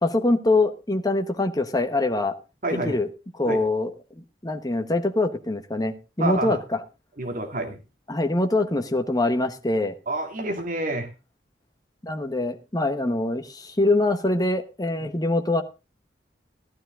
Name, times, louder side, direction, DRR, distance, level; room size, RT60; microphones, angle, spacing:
voice 1, 0.0-2.3 2.8-3.1 3.3-3.9 4.4-6.8 8.1-9.9 12.0-15.6, left 2 dB, 20° left, 7 dB, 1.1 m, -24 dB
voice 2, 2.6-3.0 3.5-3.6 6.2-6.6 7.2-7.8 10.1-11.1 15.0-15.1, right 2 dB, 50° right, 5 dB, 2.1 m, -28 dB
13.5 x 12.0 x 3.7 m, 0.29 s
head